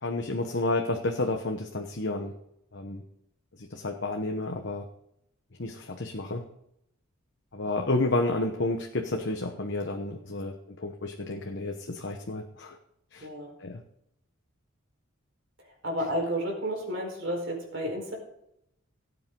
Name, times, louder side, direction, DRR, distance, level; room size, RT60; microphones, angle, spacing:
voice 1, 0.0-2.3 2.7-3.0 3.6-4.8 5.6-6.4 7.5-12.8 13.1-13.3 13.6-13.8, left 2 dB, 60° left, 3 dB, 1.1 m, -30 dB
voice 2, 13.2-13.5 15.8-18.2, equal, 60° right, 1 dB, 4.6 m, -31 dB
17.5 x 8.5 x 3.9 m, 0.78 s
head